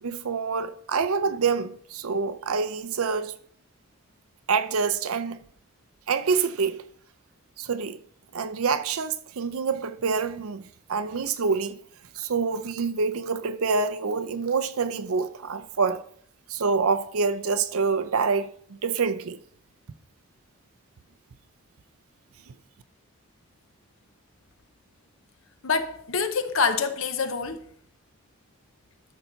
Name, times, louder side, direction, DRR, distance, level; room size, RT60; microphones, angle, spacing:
voice 1, 0.0-3.4 4.5-5.4 6.1-6.8 7.6-8.0 8.3-11.8 12.1-16.0 16.5-19.4, right 5 dB, 75° right, 0.6 m, -26 dB
voice 2, 25.6-27.7, left 5 dB, 65° left, 0.8 m, -26 dB
12.5 x 5.7 x 4.0 m
head